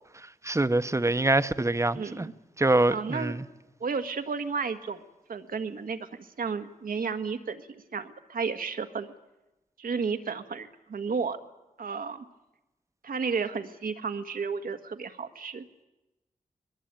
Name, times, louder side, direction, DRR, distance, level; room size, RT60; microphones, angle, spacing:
voice 1, 0.4-2.3 2.6-3.4, right 2 dB, 20° right, 1.0 m, -25 dB
voice 2, 1.9-2.3 2.9-3.4 3.8-5.0 5.3-9.1 9.8-11.4 11.8-12.2 13.0-15.7, right 5 dB, 80° right, 1.7 m, -32 dB
21.5 x 21.0 x 9.0 m
cardioid pair, 60°, 15 cm